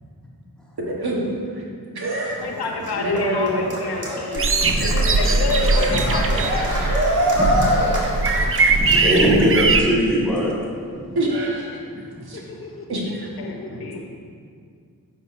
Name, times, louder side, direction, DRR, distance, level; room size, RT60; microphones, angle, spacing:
voice 1, 0.8-1.4 1.9-2.4 3.0-3.7 9.1-9.3 11.1-11.7 12.3-12.4 12.9-13.3, right 1 dB, 80° right, -2 dB, 1.4 m, -24 dB
Cheering, 2.3-9.3, equal, 50° right, 1.6 m, -25 dB
voice 2, 2.4-4.5 4.8-6.2 6.5-6.8 13.4-14.0, left 4 dB, 85° left, 2 dB, 0.9 m, -28 dB
sound 1, 4.4-9.8, right 3 dB, 35° right, 0.5 m, -20 dB
voice 3, 4.6-5.0 5.9-6.1 7.3-7.9 8.7-10.5 10.9-11.1 13.7-13.9, equal, 5° left, -6 dB, 1.7 m, -22 dB
voice 4, 5.2-6.2 6.6-7.3 12.3-13.1 13.4-14.1, left 3 dB, 35° left, 2 dB, 0.6 m, -36 dB
9.6 x 6.1 x 2.6 m, 2.2 s
wide cardioid pair, 105°, 37 cm